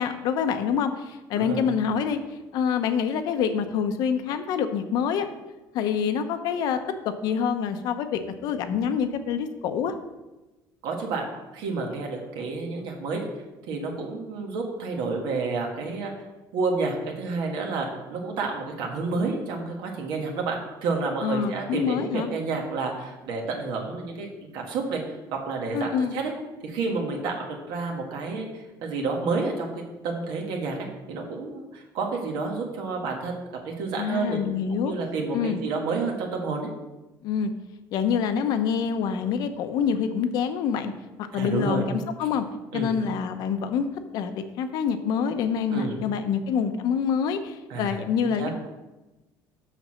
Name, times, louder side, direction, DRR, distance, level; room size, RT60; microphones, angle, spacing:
voice 1, 0.0-5.3 5.7-6.8 7.0-9.9 21.2-22.3 25.7-26.1 34.0-34.9 35.3-35.6 37.2-37.5 37.9-40.9 41.2-42.4 42.7-43.9 44.1-48.5, left 7 dB, 60° left, 9 dB, 0.8 m, -26 dB
voice 2, 10.8-13.3 13.7-16.1 16.5-25.0 25.3-26.3 26.6-30.8 31.1-34.4 34.7-36.7 41.3-41.9 42.7-42.9 45.7-46.0 47.7-48.0 48.4-48.5, right 4 dB, 70° right, 1 dB, 1.6 m, -30 dB
6.6 x 6.2 x 6.3 m, 1.1 s
cardioid pair, 180°, 8 cm